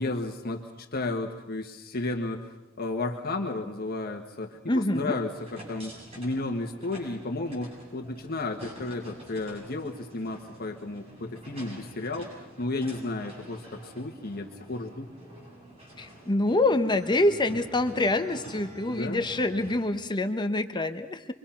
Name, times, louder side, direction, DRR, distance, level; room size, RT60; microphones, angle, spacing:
voice 1, 0.0-15.1 18.9-19.2, left 2 dB, 50° left, 3 dB, 1.5 m, -33 dB
voice 2, 4.7-5.2 16.0-21.3, left 2 dB, 20° left, 8 dB, 0.9 m, -26 dB
sound 1, 5.0-19.9, right 1 dB, 30° right, 7.8 m, -47 dB
26.5 x 23.5 x 5.9 m, 0.98 s
head